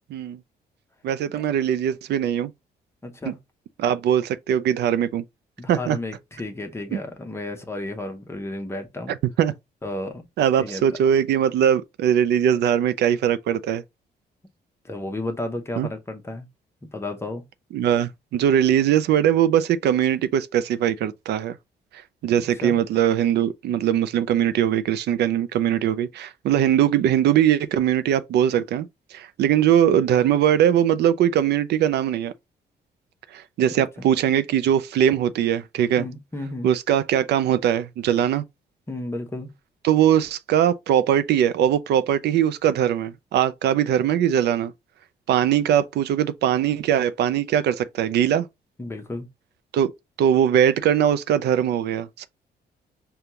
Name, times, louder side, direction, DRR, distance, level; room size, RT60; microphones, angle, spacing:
voice 1, 1.0-2.5 3.3-3.4 3.8-5.2 5.7-6.0 6.9-7.0 9.4-9.5 10.4-13.8 15.8-15.9 17.7-21.5 22.2-32.3 33.3-36.0 36.6-38.4 39.8-44.7 45.3-48.5 49.7-49.9 50.2-52.3, right 10 dB, 80° right, 0.5 m, -21 dB
voice 2, 3.0-3.4 5.6-9.2 9.8-10.3 10.6-10.8 14.8-16.5 16.8-17.4 22.6-22.8 34.0-34.1 36.0-36.7 38.9-39.5 48.8-49.3, left 2 dB, 15° left, 0.7 m, -32 dB
5.2 x 2.3 x 2.9 m
cardioid pair, 135°, 17 cm